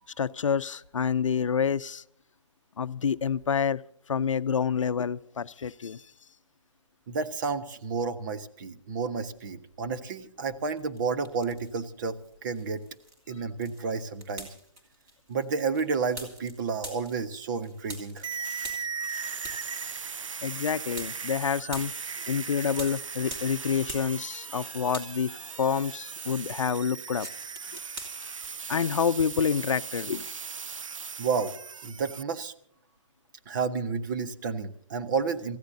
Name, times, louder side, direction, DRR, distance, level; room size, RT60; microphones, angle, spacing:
voice 1, 0.2-2.0 2.8-3.8 4.1-6.0 20.4-21.9 22.3-27.3 28.7-30.3, left 7 dB, 75° left, 15 dB, 0.7 m, -28 dB
voice 2, 7.1-12.8 13.3-14.5 15.3-18.2 31.2-31.5 31.8-32.5 33.5-35.6, right 5 dB, 40° right, 10 dB, 1.3 m, -31 dB
sound 1, 10.7-11.9 12.2-24.6 24.9-28.8, right 1 dB, 20° right, 3.1 m, -45 dB
sound 2, 18.2-32.2, right 6 dB, 85° right, 0.6 m, -38 dB
28.0 x 15.5 x 2.7 m, 0.66 s
hypercardioid pair, 150°, 16 cm